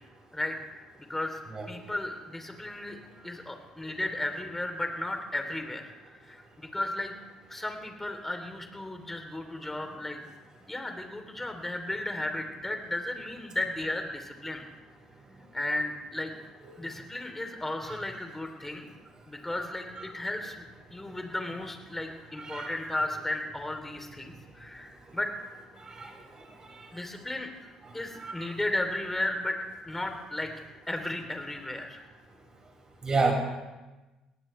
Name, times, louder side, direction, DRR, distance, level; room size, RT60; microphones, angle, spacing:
voice 1, 1.1-1.4 1.7-3.0 3.2-6.4 6.7-7.1 7.5-10.2 10.6-14.6 15.5-16.3 16.8-18.9 19.2-20.6 20.9-25.3 26.9-27.5 27.9-29.6 29.9-30.5 30.9-32.0, left 1 dB, 15° left, 4 dB, 3.3 m, -34 dB
voice 2, 22.4-22.7 25.9-26.1 28.2-28.4 33.0-33.3, right 4 dB, 35° right, 1 dB, 5.8 m, -29 dB
22.5 x 18.0 x 3.3 m, 1.1 s
hypercardioid pair, 55°, 2 cm